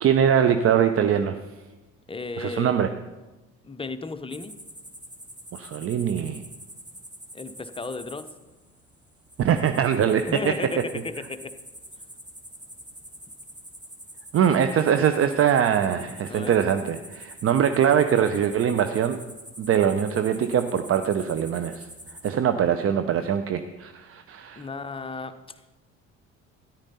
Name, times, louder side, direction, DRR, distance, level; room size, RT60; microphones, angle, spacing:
voice 1, 0.0-1.4 2.4-2.9 5.5-6.4 9.4-10.3 14.3-19.2 19.6-21.9 22.2-24.7, right 8 dB, 35° right, 9 dB, 0.7 m, -22 dB
voice 2, 2.1-2.8 3.6-4.6 7.3-8.3 10.3-11.5 16.3-16.6 24.6-25.4, left 3 dB, 15° left, 9 dB, 0.8 m, -34 dB
sound 1, 4.3-22.3, right 1 dB, 10° right, 1.7 m, -45 dB
13.5 x 10.5 x 4.1 m, 1.2 s
figure-of-eight pair, 55°, 38 cm